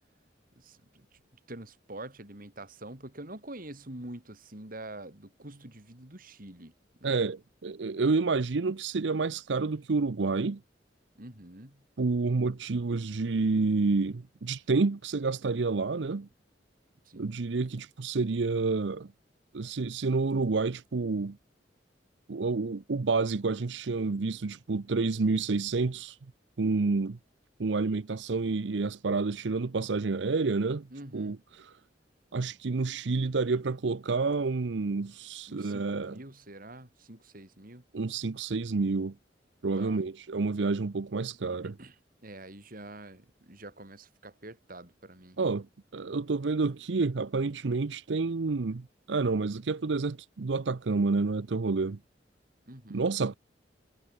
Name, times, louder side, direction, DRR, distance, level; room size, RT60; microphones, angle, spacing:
voice 1, 0.6-1.2 1.5-6.7 7.0-7.2 11.2-11.8 17.1-17.3 30.9-31.4 35.5-37.8 39.8-40.0 41.6-42.0 42.2-45.4 52.7-53.0, right 1 dB, 50° right, 3.8 m, -46 dB
voice 2, 7.0-10.6 12.0-16.3 17.2-19.1 19.5-21.4 22.3-26.2 26.6-27.2 27.6-30.9 31.1-31.7 32.3-36.2 37.9-39.1 39.6-41.7 45.4-45.7 45.9-52.0 52.9-53.3, right 3 dB, 85° right, 0.7 m, -29 dB
head